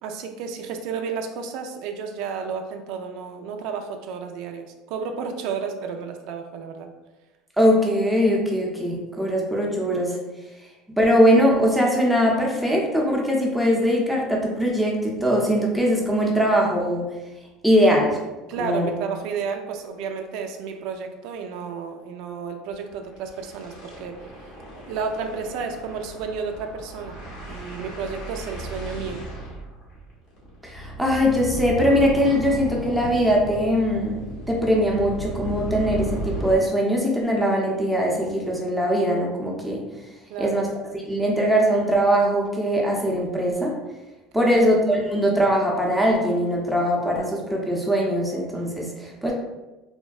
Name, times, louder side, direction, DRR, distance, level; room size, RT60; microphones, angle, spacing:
voice 1, 0.0-6.9 18.5-24.2 24.9-27.2 27.4-29.2 40.3-40.6 44.3-44.5 49.2-49.3, right 5 dB, 70° right, 5 dB, 0.3 m, -32 dB
voice 2, 7.6-10.2 10.9-17.1 17.6-18.2 18.6-18.9 30.6-39.8 40.4-40.7 40.9-43.8 44.3-49.3, equal, ahead, -3 dB, 0.6 m, -21 dB
sound 1, 19.9-20.0 20.4-20.5 20.7-20.9 21.2-21.4 22.7-36.6, right 1 dB, 65° left, 1.1 m, -35 dB
3.4 x 2.1 x 2.3 m, 1.1 s
supercardioid pair, 105°, 0 cm